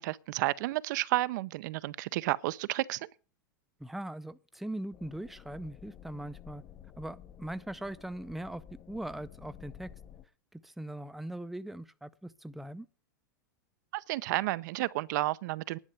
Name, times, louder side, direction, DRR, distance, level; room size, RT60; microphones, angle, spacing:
voice 1, 0.0-3.1 13.9-15.8, right 17 dB, 60° right, 0.6 m, -31 dB
voice 2, 3.8-6.6 7.0-9.9 10.5-12.9, right 1 dB, ahead, 0.6 m, -40 dB
sound 1, 4.9-10.3, left 9 dB, 30° left, 0.9 m, -52 dB
11.0 x 6.5 x 8.8 m
hypercardioid pair, 115°, 11 cm